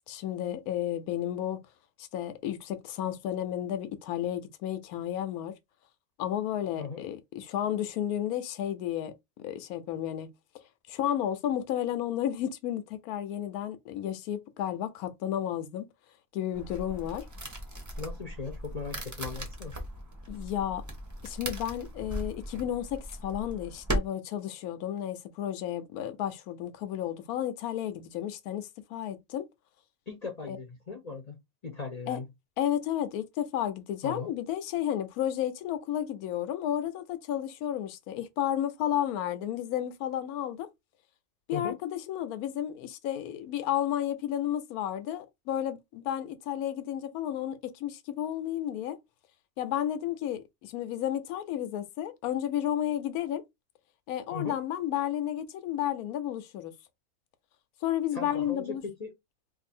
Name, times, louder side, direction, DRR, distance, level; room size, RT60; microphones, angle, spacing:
voice 1, 0.1-1.7 2.0-5.6 6.2-9.1 9.4-10.3 10.9-15.9 16.3-17.3 20.3-20.8 21.2-29.5 30.5-30.6 32.1-32.2 32.6-40.7 41.5-49.0 49.6-53.4 54.1-56.7 57.8-58.8, left 11 dB, 80° left, 1.1 m, -32 dB
sound 1, 16.5-24.0, equal, 15° right, 0.6 m, -38 dB
voice 2, 18.0-19.7 30.1-31.4 31.6-32.3 34.0-34.3 41.5-41.8 54.3-54.6 58.1-59.1, left 4 dB, 40° left, 0.6 m, -38 dB
2.7 x 2.6 x 4.2 m
omnidirectional pair, 1.6 m